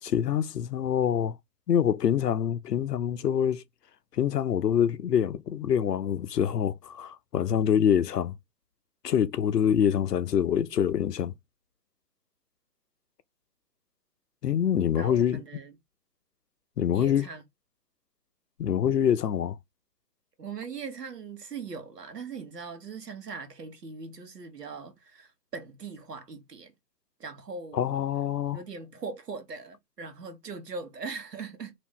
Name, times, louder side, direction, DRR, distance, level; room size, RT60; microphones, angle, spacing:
voice 1, 0.0-1.4 1.7-3.6 4.1-8.3 9.0-11.3 14.4-15.4 16.8-17.3 18.6-19.6 27.7-28.6, left 9 dB, 70° left, 0.6 m, -25 dB
voice 2, 15.0-15.7 16.9-17.4 20.4-26.7 27.2-28.1 28.5-31.7, right 5 dB, 70° right, 1.3 m, -40 dB
2.9 x 2.6 x 3.5 m
hypercardioid pair, 170°, 49 cm